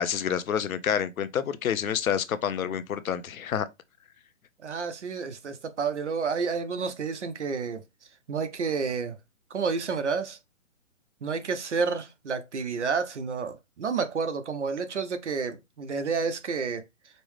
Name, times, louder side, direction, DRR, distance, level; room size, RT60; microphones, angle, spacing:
voice 1, 0.0-3.7, left 8 dB, 85° left, 0.7 m, -28 dB
voice 2, 4.6-7.8 8.3-9.2 9.5-10.4 11.2-16.8, right 5 dB, 60° right, 0.7 m, -30 dB
5.3 x 2.1 x 3.1 m
hypercardioid pair, 175°, 41 cm